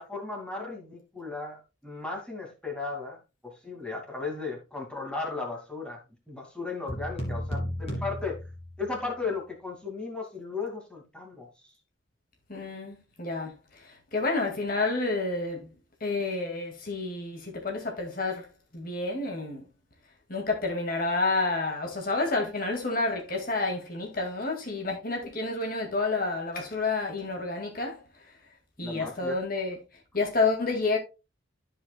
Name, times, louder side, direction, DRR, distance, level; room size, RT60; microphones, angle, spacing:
voice 1, 0.0-8.4 8.8-11.5 28.8-29.4, left 4 dB, 5° left, 2.3 m, -36 dB
sound 1, 6.9-9.1, equal, 30° left, 2.5 m, -34 dB
voice 2, 12.5-15.7 16.0-18.5 18.7-19.7 20.3-28.0 28.8-29.8 30.1-31.0, left 3 dB, 50° left, 2.2 m, -29 dB
13.5 x 5.1 x 2.3 m
head